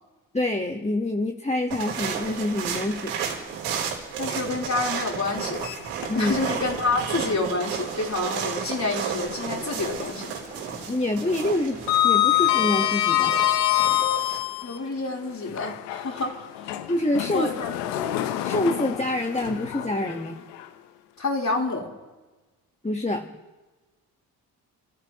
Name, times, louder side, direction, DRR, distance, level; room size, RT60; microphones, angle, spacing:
voice 1, 0.3-3.1 6.1-6.5 10.9-13.4 16.9-17.5 18.4-20.4 22.8-23.3, left 1 dB, 15° left, 4 dB, 1.5 m, -26 dB
sound 1, 1.7-14.4, right 7 dB, 85° right, 4.0 m, -33 dB
voice 2, 4.2-5.7 6.1-10.3 14.6-16.7 17.3-17.8 21.2-21.9, left 3 dB, 35° left, -1 dB, 4.2 m, -28 dB
Sliding door, 5.5-6.5 6.9-7.0 8.7-9.8 10.0-10.4 10.7-14.8 15.4-20.6, left 13 dB, 85° left, 1.1 m, -26 dB
29.5 x 14.5 x 3.2 m, 1.2 s
hypercardioid pair, 50°, 48 cm